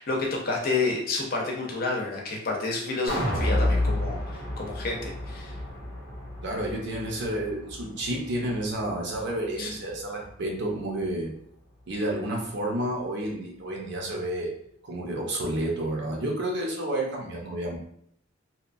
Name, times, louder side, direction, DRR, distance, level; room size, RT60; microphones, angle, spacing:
voice 1, 0.0-5.6 9.6-9.8, left 3 dB, 45° left, -1 dB, 0.6 m, -30 dB
sound 1, 3.1-9.3 9.7-9.8, left 1 dB, 85° right, 1.2 m, -30 dB
voice 2, 6.4-11.3 11.9-14.5 14.8-17.8, right 1 dB, 60° right, -1 dB, 0.7 m, -30 dB
2.8 x 2.2 x 2.5 m, 0.68 s
head